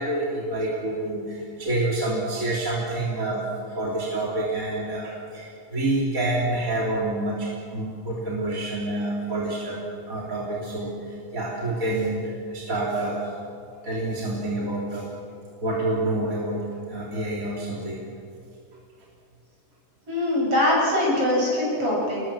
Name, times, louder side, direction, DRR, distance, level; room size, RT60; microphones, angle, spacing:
voice 1, 0.0-13.3 13.8-15.1 15.6-18.0, right 2 dB, 25° right, -4 dB, 3.4 m, -28 dB
voice 2, 20.1-22.2, left 1 dB, 40° right, -3 dB, 9.1 m, -22 dB
29.0 x 21.0 x 7.4 m, 2.4 s
omnidirectional pair, 3.9 m